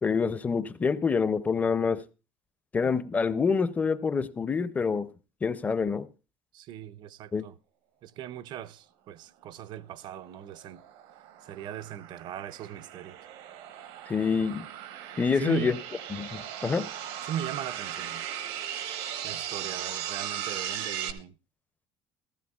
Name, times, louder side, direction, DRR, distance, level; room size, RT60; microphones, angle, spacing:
voice 1, 0.0-2.0 2.7-5.1 5.4-6.1 7.3-7.5 14.1-14.7 15.2-15.8 16.1-16.9, left 5 dB, 15° left, 0.5 m, -27 dB
voice 2, 6.5-7.6 8.0-10.8 11.4-13.2 15.4-15.8 17.2-18.3 19.2-21.3, right 10 dB, 50° right, 0.5 m, -39 dB
sound 1, 10.3-21.1, right 10 dB, 85° right, 1.1 m, -37 dB
15.0 x 14.5 x 2.3 m
cardioid pair, 160°, 10 cm